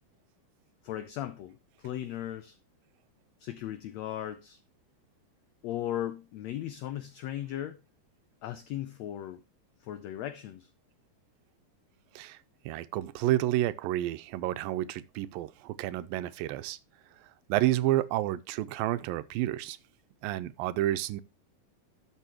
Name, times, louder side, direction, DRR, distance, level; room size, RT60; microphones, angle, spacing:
voice 1, 0.8-2.6 3.4-4.6 5.6-7.8 8.4-9.4 9.8-10.7, left 12 dB, 80° left, 1.6 m, -37 dB
voice 2, 12.7-16.8 17.5-19.8 20.2-21.2, right 14 dB, 90° right, 2.4 m, -30 dB
12.5 x 6.6 x 3.0 m
omnidirectional pair, 4.0 m